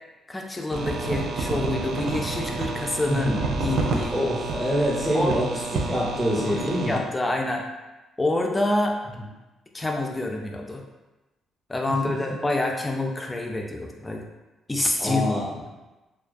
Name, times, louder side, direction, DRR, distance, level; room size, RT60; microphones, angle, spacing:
voice 1, 0.3-3.3 3.6-4.1 5.1-5.4 6.4-7.7 8.2-9.0 9.7-10.8 11.7-14.2 14.7-15.3 15.5-15.6, left 2 dB, 15° left, 2 dB, 0.3 m, -27 dB
sound 1, 0.7-7.0, right 3 dB, 75° right, 0.3 m, -29 dB
voice 2, 3.1-3.4 4.1-7.0 9.1-9.2 11.9-12.2 15.0-15.5, equal, 15° right, -4 dB, 0.7 m, -26 dB
2.3 x 2.2 x 2.5 m, 1.1 s
cardioid pair, 90°, 0 cm